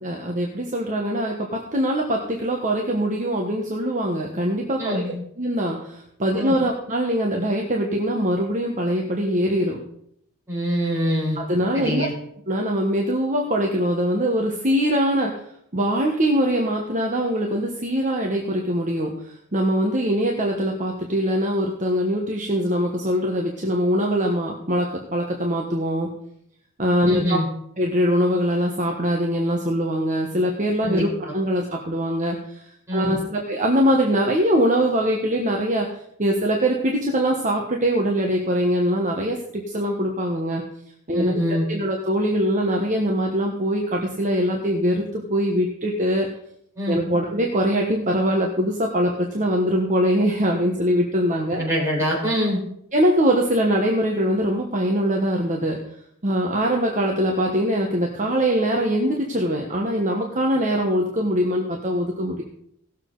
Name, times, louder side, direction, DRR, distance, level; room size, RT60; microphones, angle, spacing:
voice 1, 0.0-5.1 5.4-9.8 11.3-12.1 12.5-15.3 15.7-26.1 26.8-27.4 27.8-32.6 32.9-35.9 36.2-40.6 41.1-41.4 41.7-46.3 46.9-51.6 52.9-55.8 56.2-62.4, equal, 35° right, 0 dB, 1.3 m, -22 dB
voice 2, 4.8-5.1 6.3-6.5 10.5-11.4 11.7-12.1 27.0-27.5 30.8-31.1 32.9-33.2 41.1-41.6 46.8-47.0 51.6-52.6, equal, 15° right, -5 dB, 4.9 m, -24 dB
18.0 x 7.3 x 4.0 m, 0.72 s
head